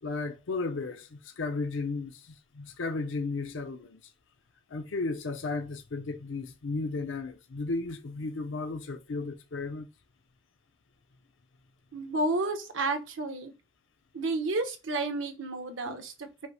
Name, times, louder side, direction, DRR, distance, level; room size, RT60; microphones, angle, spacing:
voice 1, 0.0-4.0 4.7-9.9 15.9-16.0, left 3 dB, 70° left, 0.6 m, -34 dB
voice 2, 11.9-13.5 14.1-16.5, right 2 dB, 70° right, 0.9 m, -31 dB
5.4 x 2.1 x 4.8 m
head